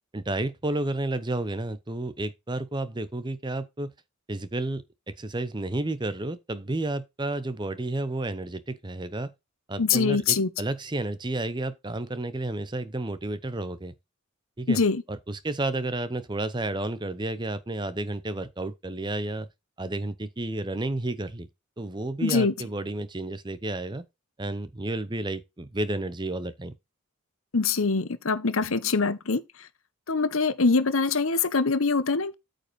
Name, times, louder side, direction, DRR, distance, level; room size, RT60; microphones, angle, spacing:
voice 1, 0.1-3.9 4.3-9.3 9.7-13.9 14.6-14.8 15.1-19.5 19.8-21.5 21.8-24.0 24.4-26.7, right 2 dB, 20° right, 0.7 m, -31 dB
voice 2, 9.8-10.5 14.7-15.0 22.2-22.5 27.5-29.4 30.1-32.3, left 4 dB, 70° left, 1.0 m, -24 dB
8.9 x 5.1 x 4.2 m
head